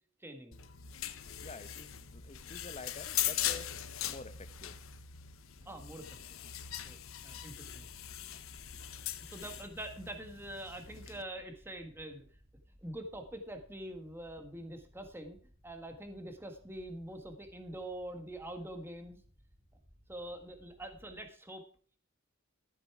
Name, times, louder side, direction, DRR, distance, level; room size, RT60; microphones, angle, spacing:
voice 1, 0.2-0.6 5.6-6.4 6.8-7.0 7.2-7.9 9.2-12.2 12.8-15.4 15.6-19.2 20.1-21.6, right 1 dB, 10° right, 5 dB, 1.6 m, -45 dB
sound 1, 0.5-11.2, left 11 dB, 75° left, 0.9 m, -40 dB
sound 2, 1.3-21.2, equal, 25° right, 3.9 m, -63 dB
voice 2, 1.4-3.7 4.1-4.8, left 3 dB, 30° left, 11 dB, 1.0 m, -48 dB
13.5 x 8.2 x 4.8 m, 0.43 s
head